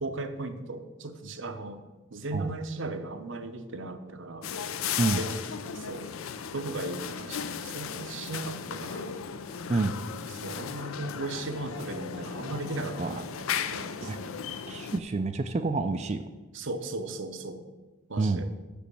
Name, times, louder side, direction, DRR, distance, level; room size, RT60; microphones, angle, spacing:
voice 1, 0.0-1.8 2.1-4.5 5.2-5.4 5.7-6.1 6.5-9.1 10.3-14.4 16.5-17.6 18.1-18.5, right 2 dB, 60° right, 9 dB, 0.8 m, -37 dB
sound 1, 4.4-15.0, left 7 dB, 80° left, 0.5 m, -36 dB
voice 2, 14.7-16.2 18.2-18.4, right 3 dB, 30° right, 8 dB, 0.4 m, -28 dB
6.9 x 6.2 x 7.6 m, 1.2 s
head